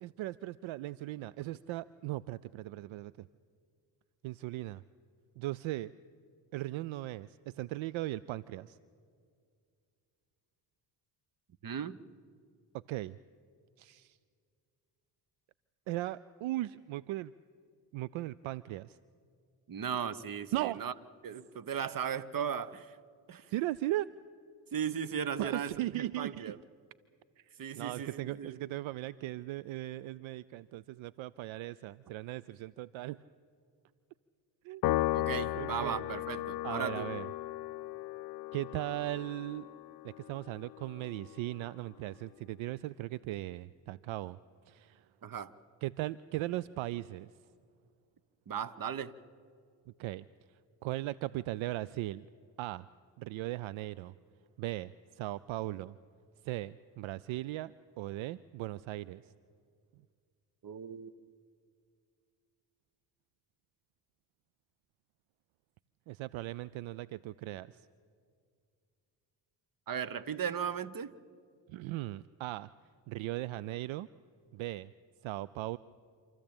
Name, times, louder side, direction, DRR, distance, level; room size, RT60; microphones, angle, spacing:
voice 1, 0.0-3.3 4.2-4.8 5.4-5.9 6.5-8.8 12.9-13.2 13.8-14.2 15.9-17.3 17.9-19.0 20.5-20.8 23.5-24.1 25.4-26.5 27.4-33.2 34.6-34.8 35.5-36.1 36.6-37.3 38.5-39.7 40.0-44.4 44.7-45.1 45.8-47.3 50.0-50.2 50.8-52.3 52.6-52.9 53.2-54.1 54.6-56.0 56.4-59.3 66.1-67.8 71.7-72.7 73.1-74.1 74.5-74.9 75.2-75.8, right 16 dB, 70° right, 20 dB, 0.6 m, -38 dB
voice 2, 11.6-12.0 19.7-20.9 21.2-23.0 23.3-23.4 24.7-26.6 27.6-28.6 35.1-37.1 45.2-45.5 48.5-49.1 60.6-61.1 69.9-71.1, right 8 dB, 40° right, 17 dB, 1.1 m, -37 dB
Piano, 34.8-41.4, left 15 dB, 50° left, 0.5 m, -36 dB
27.0 x 14.0 x 8.8 m, 2.2 s
supercardioid pair, 55°, 49 cm